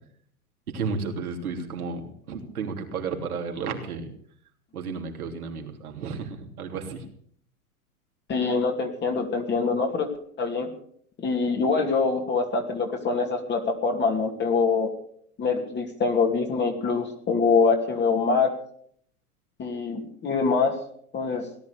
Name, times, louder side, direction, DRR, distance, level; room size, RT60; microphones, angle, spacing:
voice 1, 0.7-4.1 4.7-7.0, right 5 dB, 75° right, 3 dB, 3.4 m, -32 dB
voice 2, 8.3-10.1 10.4-10.7 11.2-14.9 15.4-18.5 19.6-20.8 21.1-21.4, left 4 dB, 25° left, 3 dB, 2.5 m, -24 dB
18.0 x 11.0 x 6.8 m, 0.63 s
hypercardioid pair, 105°, 44 cm